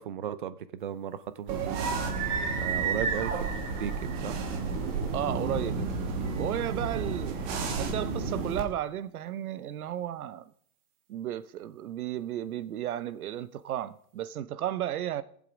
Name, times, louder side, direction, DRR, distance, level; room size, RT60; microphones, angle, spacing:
voice 1, 0.0-2.3 2.6-4.4, right 9 dB, 35° right, 0.5 m, -36 dB
sound 1, 1.5-8.6, right 4 dB, 20° right, 1.2 m, -31 dB
voice 2, 5.1-5.9 6.4-7.4 7.8-10.5 11.1-15.2, right 11 dB, 75° right, 0.9 m, -33 dB
19.0 x 7.7 x 5.0 m
supercardioid pair, 170°, 44 cm